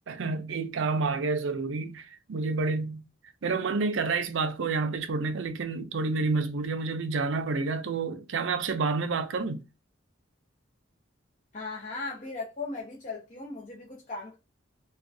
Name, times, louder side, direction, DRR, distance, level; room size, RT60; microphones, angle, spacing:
voice 1, 0.1-3.0 3.4-9.6, right 4 dB, 75° right, 0.5 m, -29 dB
voice 2, 11.5-14.4, left 3 dB, 40° left, 0.7 m, -37 dB
3.5 x 2.3 x 2.6 m
head